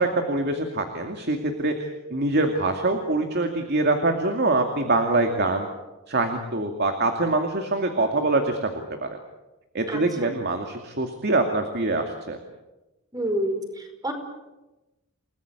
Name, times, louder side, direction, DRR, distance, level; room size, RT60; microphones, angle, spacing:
voice 1, 0.0-5.7 6.1-8.7 9.0-9.2 9.7-12.4, right 2 dB, 55° right, 5 dB, 2.4 m, -24 dB
voice 2, 13.1-14.1, right 1 dB, 20° right, 5 dB, 4.9 m, -28 dB
30.0 x 19.5 x 8.3 m, 1.1 s
head